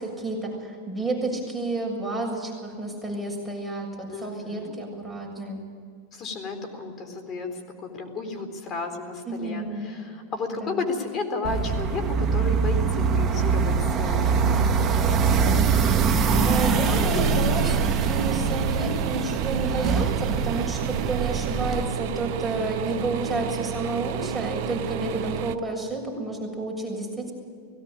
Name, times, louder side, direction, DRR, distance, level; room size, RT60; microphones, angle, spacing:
voice 1, 0.0-5.6 9.3-10.0 10.6-10.8 16.2-27.3, right 2 dB, ahead, -2 dB, 7.1 m, -30 dB
voice 2, 4.1-4.7 6.1-14.8 24.9-25.4, left 4 dB, 35° left, 6 dB, 4.1 m, -33 dB
sound 1, 11.4-21.8, right 5 dB, 30° right, 1.6 m, -23 dB
sound 2, 16.3-25.6, right 12 dB, 60° right, 1.0 m, -32 dB
19.0 x 16.5 x 8.9 m, 2.2 s
hypercardioid pair, 120°, 0 cm